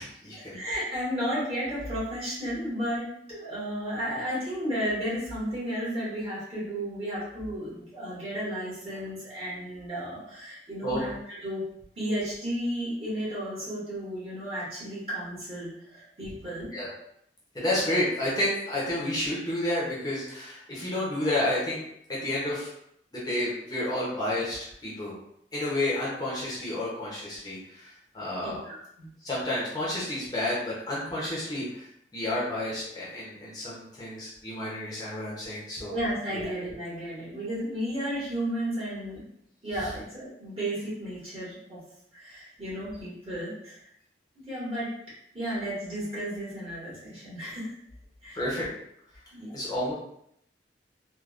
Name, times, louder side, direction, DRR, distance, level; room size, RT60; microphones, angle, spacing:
voice 1, 0.0-0.6 10.8-11.0 16.7-16.9 17.5-21.8 22.1-22.7 23.1-25.1 25.5-28.6 29.2-35.9 36.3-36.5 39.8-39.9 48.3-48.7 49.5-49.9, left 1 dB, 25° left, -7 dB, 0.7 m, -30 dB
voice 2, 0.5-11.6 12.0-16.7 28.4-29.1 35.8-39.2 39.6-41.8 42.1-43.9 44.3-44.9 45.3-47.7 48.2-48.4 49.3-49.5, equal, 35° right, -8 dB, 1.5 m, -33 dB
3.4 x 2.2 x 2.4 m, 0.73 s
head